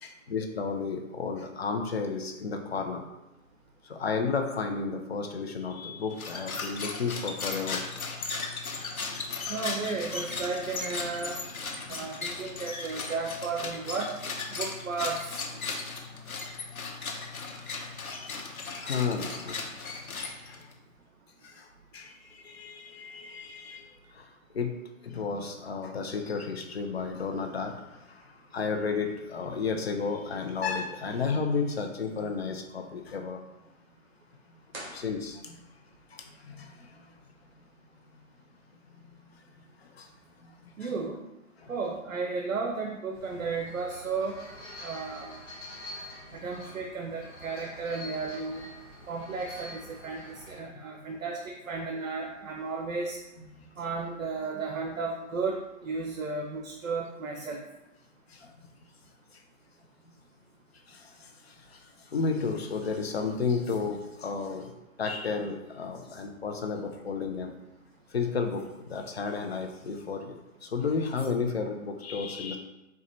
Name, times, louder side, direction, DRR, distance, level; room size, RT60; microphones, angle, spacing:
voice 1, 0.0-3.0 3.8-7.8 11.9-12.0 18.7-19.7 20.4-20.7 21.4-24.7 25.0-33.4 34.9-35.7 36.1-37.1 39.8-40.1 40.4-40.9 41.6-41.7 50.7-51.0 53.4-53.7 58.3-58.5 60.9-64.7 65.0-67.5 68.1-72.6, left 5 dB, 50° left, 4 dB, 0.6 m, -33 dB
sound 1, 6.1-20.7, left 4 dB, 90° left, 0.9 m, -37 dB
voice 2, 9.5-11.4 11.9-14.2 14.5-15.4 40.8-41.2 41.7-44.4 44.8-45.3 46.3-48.6 49.1-53.2 53.8-57.6, right 4 dB, 70° right, 2 dB, 0.7 m, -34 dB
sound 2, 34.7-35.9, right 1 dB, 40° right, 1.5 m, -45 dB
sound 3, 43.1-50.6, left 1 dB, 15° left, 0.8 m, -46 dB
4.3 x 2.4 x 4.0 m, 0.93 s
figure-of-eight pair, 145°, 42 cm